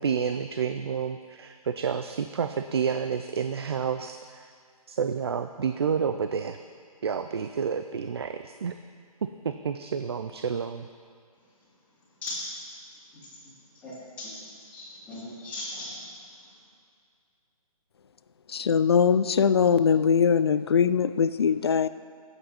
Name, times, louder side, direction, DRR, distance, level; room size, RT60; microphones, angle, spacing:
voice 1, 0.0-4.5 4.9-6.6 7.0-8.7 9.4-10.9, right 6 dB, 45° right, 8 dB, 0.4 m, -29 dB
voice 2, 13.1-13.5 13.8-14.4 14.7-16.0, left 2 dB, 5° left, -11 dB, 3.1 m, -38 dB
voice 3, 18.5-21.9, left 6 dB, 45° left, 14 dB, 0.4 m, -21 dB
16.5 x 8.0 x 4.2 m, 2.3 s
hypercardioid pair, 160°, 19 cm